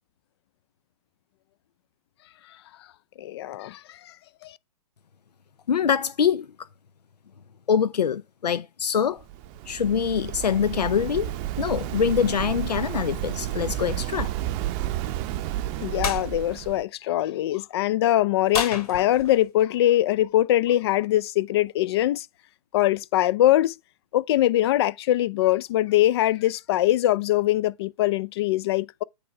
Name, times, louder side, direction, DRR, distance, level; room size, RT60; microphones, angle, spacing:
voice 1, 3.2-4.1 4.4-4.6 15.8-22.3 22.7-23.8 24.1-29.0, left 14 dB, 40° left, 0.4 m, -22 dB
voice 2, 5.7-6.5 7.7-9.2 9.7-14.3, left 7 dB, 90° left, 0.6 m, -24 dB
Waves surf, 9.2-16.8, right 13 dB, 30° right, 0.7 m, -31 dB
sound 1, 16.0-16.3 18.5-19.5, left 6 dB, 65° left, 2.9 m, -30 dB
8.5 x 3.4 x 4.5 m
hypercardioid pair, 135°, 20 cm